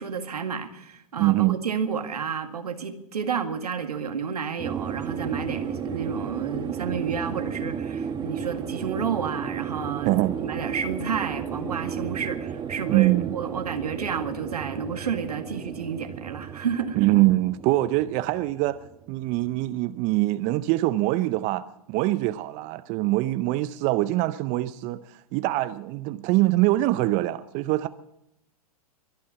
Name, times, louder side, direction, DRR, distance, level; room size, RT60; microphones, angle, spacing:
voice 1, 0.0-17.0, right 6 dB, 85° right, 1.9 m, -31 dB
voice 2, 1.2-1.6 10.0-10.4 12.9-13.3 17.0-18.8 19.1-27.9, right 18 dB, 40° right, 0.7 m, -23 dB
sound 1, 4.6-19.5, right 7 dB, 20° right, 1.2 m, -34 dB
23.0 x 8.6 x 7.0 m
hypercardioid pair, 110°, 19 cm